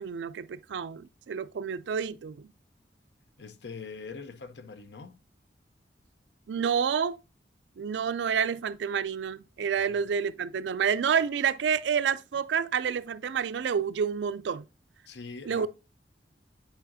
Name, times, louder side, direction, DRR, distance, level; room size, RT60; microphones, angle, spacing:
voice 1, 0.0-2.5 6.5-7.2 7.8-14.7 15.5-15.7, right 7 dB, 85° right, 0.4 m, -29 dB
voice 2, 3.4-5.2 9.8-9.9 15.1-15.7, left 4 dB, 80° left, 0.7 m, -43 dB
8.9 x 4.9 x 2.6 m
head